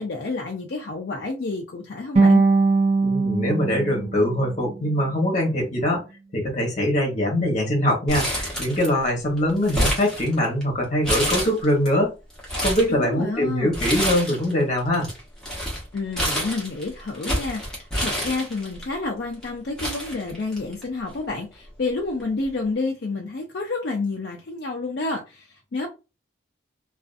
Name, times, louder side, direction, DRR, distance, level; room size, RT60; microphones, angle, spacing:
voice 1, 0.0-2.4 12.9-13.7 15.9-25.9, left 3 dB, 60° left, 0.4 m, -29 dB
sound 1, 2.2-5.3, right 3 dB, 35° right, 0.5 m, -21 dB
voice 2, 3.0-6.0 6.3-12.1 12.6-15.1, left 1 dB, 40° left, 1.0 m, -23 dB
Crumpling crinkling, 8.1-9.1 9.4-10.6 11.0-11.9 12.3-12.9 13.7-14.5 14.8-18.8 19.4-19.5 19.8-20.8 21.1-21.2 22.2-22.4, equal, 5° left, 0.9 m, -27 dB
2.4 x 2.4 x 2.4 m
head